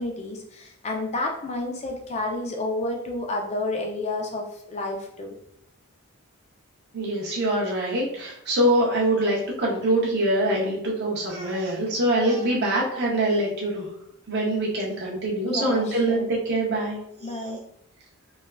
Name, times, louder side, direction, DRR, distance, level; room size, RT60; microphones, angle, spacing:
voice 1, 0.0-5.3 15.5-16.3 17.2-17.6, left 2 dB, 30° left, 1 dB, 0.4 m, -30 dB
voice 2, 6.9-13.9 14.3-17.6, right 1 dB, 50° right, -4 dB, 0.5 m, -24 dB
3.2 x 2.3 x 2.2 m, 0.75 s
head